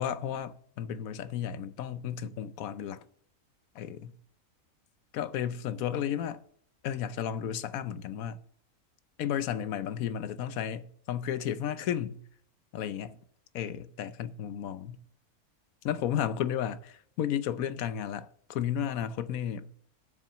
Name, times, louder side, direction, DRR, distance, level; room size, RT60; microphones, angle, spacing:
voice 1, 0.0-3.0 3.7-4.2 5.1-6.4 6.8-8.4 9.2-12.2 12.7-13.2 13.5-15.0 15.8-19.7, left 9 dB, 70° left, 1.1 m, -33 dB
7.5 x 6.1 x 7.0 m
omnidirectional pair, 1.6 m